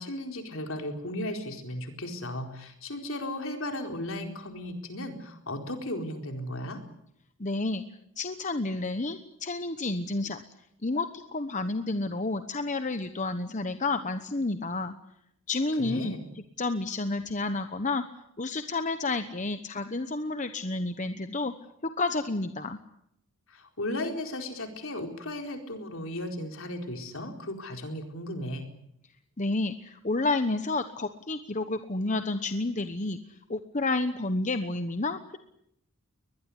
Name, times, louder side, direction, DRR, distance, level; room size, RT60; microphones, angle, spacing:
voice 1, 0.0-6.8 15.8-16.2 23.5-28.7, left 1 dB, 60° left, 4 dB, 4.3 m, -35 dB
voice 2, 7.4-7.8 8.2-10.4 10.8-14.9 15.5-16.2 16.6-18.0 18.4-21.5 21.8-22.8 29.4-35.4, left 2 dB, 35° left, 9 dB, 1.1 m, -30 dB
22.5 x 21.0 x 9.9 m, 0.78 s
head